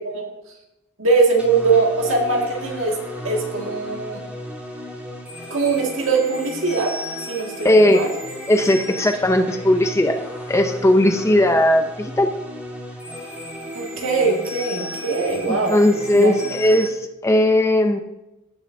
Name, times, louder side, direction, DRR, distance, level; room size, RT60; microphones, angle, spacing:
voice 1, 1.0-3.0 3.2-4.2 5.5-6.9 7.3-8.1 13.7-15.8 16.1-16.3, right 4 dB, 60° right, 0 dB, 1.9 m, -21 dB
sound 1, 1.4-16.9, left 1 dB, 5° right, 2.1 m, -34 dB
voice 2, 7.6-8.1 8.5-10.2 10.5-12.3 15.5-18.0, left 1 dB, 15° left, 6 dB, 0.5 m, -17 dB
17.0 x 6.4 x 2.6 m, 0.96 s
head